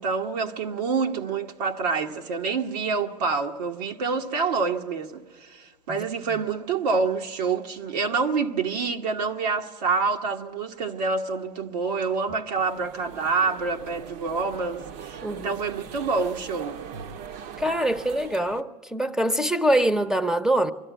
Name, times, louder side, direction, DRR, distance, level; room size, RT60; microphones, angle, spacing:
voice 1, 0.0-16.8, right 4 dB, 80° right, 1.2 m, -27 dB
sound 1, 12.6-18.6, right 7 dB, 60° right, 0.9 m, -41 dB
voice 2, 15.2-15.5 17.6-20.7, right 1 dB, 5° right, 0.8 m, -24 dB
23.0 x 13.0 x 9.2 m
hypercardioid pair, 100°, 21 cm